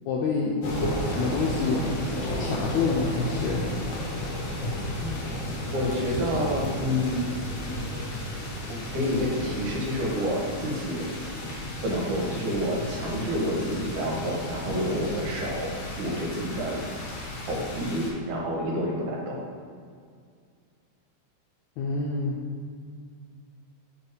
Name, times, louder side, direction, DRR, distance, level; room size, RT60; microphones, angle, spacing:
voice 1, 0.1-0.6 1.0-1.8 2.4-3.7 21.8-22.4, left 4 dB, 80° left, -2 dB, 1.6 m, -27 dB
sound 1, 0.6-18.1, left 1 dB, 60° left, 1.4 m, -33 dB
voice 2, 5.7-7.2 8.7-11.1 11.8-15.7 16.0-16.8 17.4-19.4, equal, 75° right, -2 dB, 2.3 m, -29 dB
4.8 x 4.5 x 4.8 m, 2.1 s
omnidirectional pair, 3.7 m